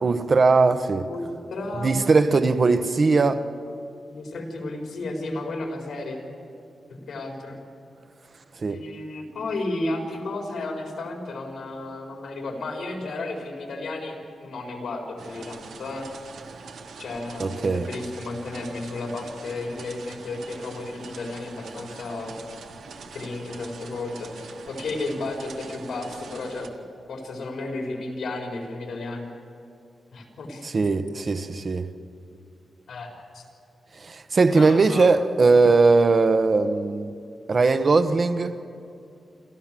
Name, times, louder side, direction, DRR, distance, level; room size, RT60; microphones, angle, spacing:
voice 1, 0.0-1.1 1.8-3.4 8.6-8.8 17.4-17.9 30.6-31.9 34.0-37.1 37.5-38.6, right 3 dB, 40° right, 0.9 m, -20 dB
voice 2, 1.1-2.0 4.1-6.2 6.9-7.6 8.7-16.1 17.0-22.4 23.1-26.8 27.1-29.2 30.1-30.7 32.9-33.4 34.5-35.1, left 2 dB, 80° left, 4.1 m, -33 dB
sound 1, 15.2-26.7, right 5 dB, 85° right, 1.5 m, -43 dB
27.5 x 13.5 x 7.5 m
wide cardioid pair, 110°, 0 cm